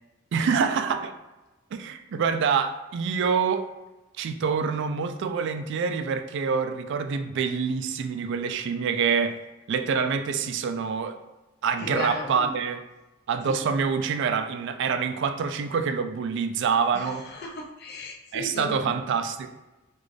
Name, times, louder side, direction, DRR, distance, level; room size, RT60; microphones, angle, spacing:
voice 1, 0.3-1.1 1.7-3.7 4.2-9.4 9.7-11.2 11.6-12.8 13.3-17.2 18.3-19.5, right 6 dB, 60° right, 0.3 m, -26 dB
voice 2, 11.8-12.5 13.5-13.6 16.9-18.9, left 1 dB, 55° left, 0.6 m, -35 dB
4.0 x 2.4 x 3.2 m
head